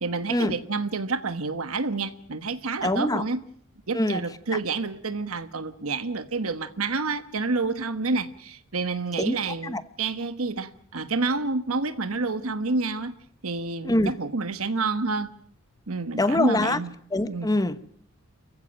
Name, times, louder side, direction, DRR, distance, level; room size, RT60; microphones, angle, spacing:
voice 1, 0.0-3.4 3.9-13.1 13.4-15.3 15.9-16.9 17.3-17.5, right 3 dB, 90° right, 1.3 m, -29 dB
voice 2, 2.8-3.2 3.9-4.2 9.2-9.4 9.6-9.8 13.8-14.1 16.2-16.8 17.1-17.8, left 1 dB, 20° left, 1.1 m, -24 dB
28.5 x 15.5 x 9.0 m
head